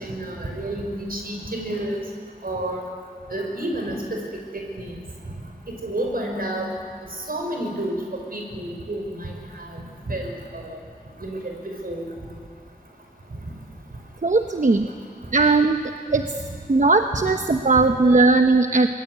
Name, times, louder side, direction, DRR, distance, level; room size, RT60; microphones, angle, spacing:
voice 1, 0.0-2.0 2.4-2.8 3.3-4.2 4.5-5.0 5.8-6.7 7.3-8.0 8.3-10.8 11.2-12.1, right 1 dB, 75° right, 2 dB, 5.8 m, -30 dB
voice 2, 14.2-14.9 15.3-15.8 16.1-16.2 16.7-18.9, right 3 dB, 55° right, 6 dB, 1.0 m, -18 dB
25.5 x 21.5 x 9.6 m, 2.1 s
wide cardioid pair, 60°, 15 cm